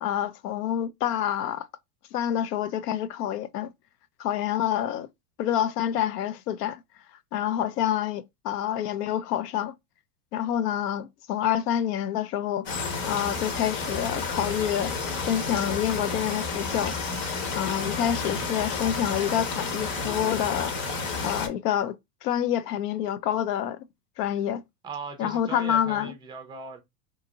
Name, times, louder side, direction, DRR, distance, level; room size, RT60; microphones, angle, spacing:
voice 1, 0.0-1.7 2.1-3.7 4.2-5.1 5.4-6.8 7.3-9.7 10.3-12.7 13.1-14.9 15.2-16.9 17.5-20.7 21.2-23.8 24.2-24.6 25.2-26.1, left 10 dB, 80° left, 0.6 m, -27 dB
sound 1, 12.7-21.5, left 4 dB, 65° left, 1.1 m, -31 dB
voice 2, 24.8-26.8, right 4 dB, 10° right, 0.4 m, -38 dB
2.8 x 2.7 x 2.3 m
supercardioid pair, 130°, 46 cm